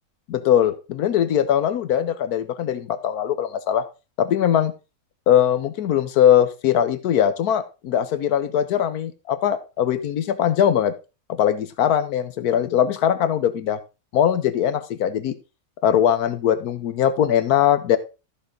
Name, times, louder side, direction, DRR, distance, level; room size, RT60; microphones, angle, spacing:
voice 1, 0.3-3.8 4.2-4.7 5.3-10.9 11.3-13.8 14.1-15.3 15.8-18.0, left 10 dB, 85° left, 11 dB, 1.3 m, -21 dB
14.0 x 6.1 x 3.8 m, 0.29 s
omnidirectional pair, 1.6 m